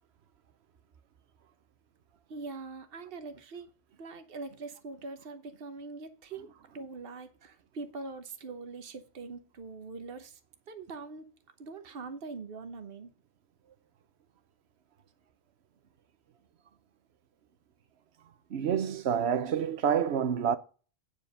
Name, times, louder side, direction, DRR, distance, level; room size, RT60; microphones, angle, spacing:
voice 1, 2.3-3.7 4.0-10.4 10.7-11.3 11.6-13.1, right 4 dB, 60° right, 1.3 m, -43 dB
voice 2, 18.5-20.6, right 8 dB, 75° right, 1.0 m, -28 dB
9.0 x 5.1 x 6.6 m
omnidirectional pair, 1.1 m